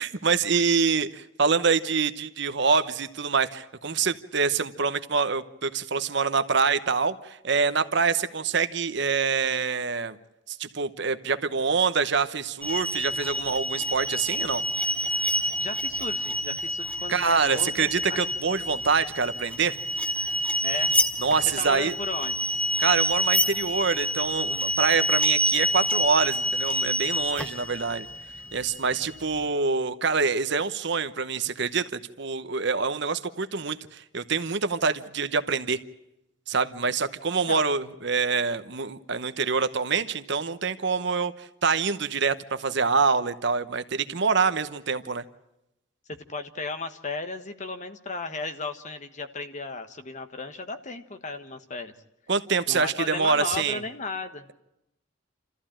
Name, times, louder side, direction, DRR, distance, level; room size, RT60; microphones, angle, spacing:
voice 1, 0.0-10.2 10.5-14.6 17.1-19.7 21.2-21.9 22.8-28.1 28.5-35.8 36.5-45.2 52.3-53.8, right 5 dB, 60° right, 12 dB, 1.0 m, -25 dB
sound 1, 12.6-29.4, equal, 5° left, 0.9 m, -28 dB
voice 2, 15.6-18.2 20.6-21.0 21.6-22.5 37.5-37.6 46.1-51.9 52.7-54.5, left 3 dB, 35° left, 9 dB, 1.4 m, -35 dB
28.0 x 14.5 x 8.8 m, 0.88 s
head